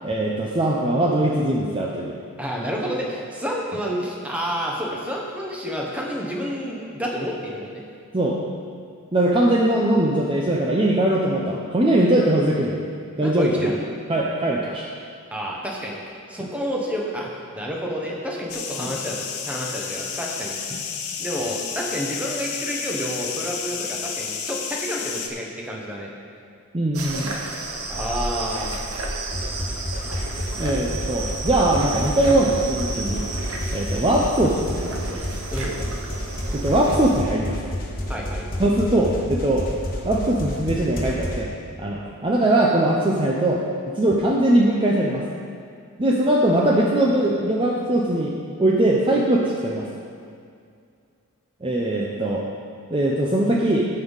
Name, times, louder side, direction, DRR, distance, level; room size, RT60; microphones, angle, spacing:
voice 1, 0.0-2.2 8.1-8.4 9.1-12.8 13.2-13.7 14.1-14.8 16.4-16.5 18.8-18.9 20.7-20.8 26.7-27.3 30.5-33.3 33.7-35.2 36.5-37.6 38.6-39.7 40.0-41.5 41.8-43.6 44.0-45.2 46.0-49.9 51.6-52.5 52.9-53.9, right 1 dB, 25° right, -2 dB, 0.6 m, -21 dB
voice 2, 2.4-7.8 13.2-13.8 15.3-19.2 19.5-20.5 21.2-26.1 27.9-28.8 35.5-35.8 38.1-38.5, equal, 5° right, -2 dB, 1.1 m, -29 dB
sound 1, 18.5-25.3, left 6 dB, 90° left, 0.9 m, -31 dB
sound 2, 26.9-37.2, right 2 dB, 80° right, 1.0 m, -32 dB
sound 3, 29.3-41.4, equal, 40° left, 1.4 m, -30 dB
16.0 x 5.4 x 4.0 m, 2.3 s
head